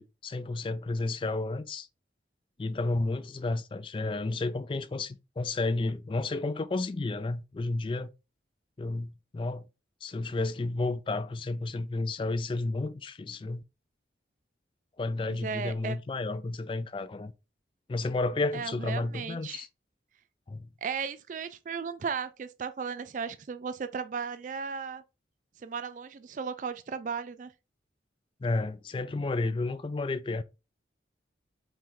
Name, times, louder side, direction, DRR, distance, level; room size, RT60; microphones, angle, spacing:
voice 1, 0.0-1.9 2.6-8.1 8.8-9.6 10.0-13.6 15.0-17.3 17.9-19.7 20.5-20.7 28.4-30.4, left 2 dB, 30° left, 0.3 m, -31 dB
voice 2, 15.3-16.0 18.5-19.7 20.8-25.0 25.6-27.5, right 6 dB, 45° right, 0.3 m, -35 dB
4.4 x 3.1 x 3.8 m
head